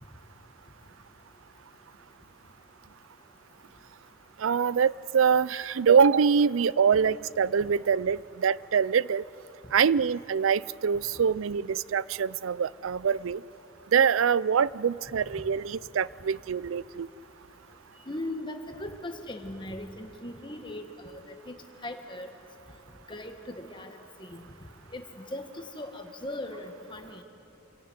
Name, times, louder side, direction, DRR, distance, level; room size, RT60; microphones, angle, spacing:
voice 1, 4.4-9.2 9.7-13.4 13.9-17.1, right 6 dB, 85° right, 20 dB, 0.4 m, -24 dB
voice 2, 18.1-21.2 21.5-21.6 21.8-22.3 23.1-24.4 24.9-25.4 25.7-27.2, left 1 dB, 25° left, 5 dB, 1.6 m, -39 dB
26.5 x 16.5 x 9.6 m, 2.9 s
head